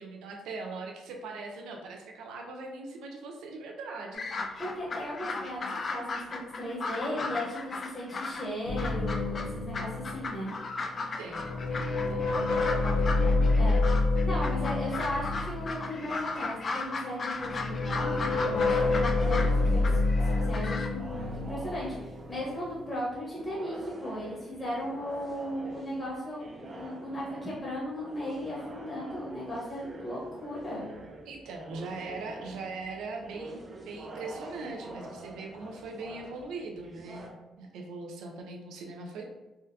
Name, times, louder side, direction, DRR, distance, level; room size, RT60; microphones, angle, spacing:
voice 1, 0.0-4.3 11.2-12.6 13.0-13.1 14.6-14.7 31.3-39.2, right 3 dB, 85° right, 2 dB, 0.5 m, -41 dB
sound 1, 4.1-8.5 8.8-20.9, left 3 dB, 45° left, 0.3 m, -36 dB
voice 2, 4.6-10.5 13.6-13.8 14.2-19.8 20.5-26.4 26.7-30.9, left 1 dB, 15° left, -8 dB, 1.0 m, -36 dB
sound 2, 8.7-10.9 11.2-16.4 17.3-22.8, left 3 dB, 90° left, 0.6 m, -28 dB
sound 3, 19.2-37.3, right 2 dB, 35° right, 0.5 m, -46 dB
3.5 x 2.2 x 2.7 m, 1.1 s
cardioid pair, 90°, 0 cm